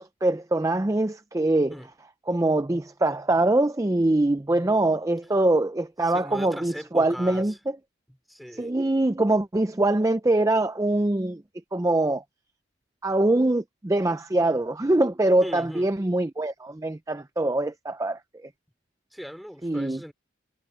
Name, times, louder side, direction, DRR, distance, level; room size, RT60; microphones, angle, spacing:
voice 1, 0.0-1.8 2.3-7.5 8.5-11.4 11.7-12.2 13.0-18.2 19.6-20.0, right 2 dB, 15° right, 0.4 m, -23 dB
voice 2, 6.0-7.6 8.3-8.7 15.4-15.9 19.1-20.1, equal, ahead, 3.8 m, -39 dB
head